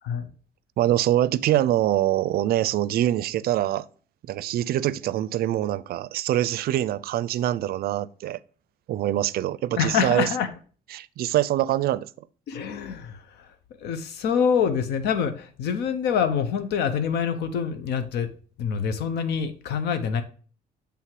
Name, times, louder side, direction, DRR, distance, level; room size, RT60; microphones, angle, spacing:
voice 1, 0.8-3.9 4.3-8.4 8.9-10.3 10.9-12.1, right 13 dB, 65° right, 0.4 m, -24 dB
voice 2, 9.8-10.5 12.5-13.5 13.8-18.3 18.6-20.2, left 7 dB, 90° left, 0.7 m, -26 dB
7.5 x 3.4 x 4.6 m
cardioid pair, 125°, 17 cm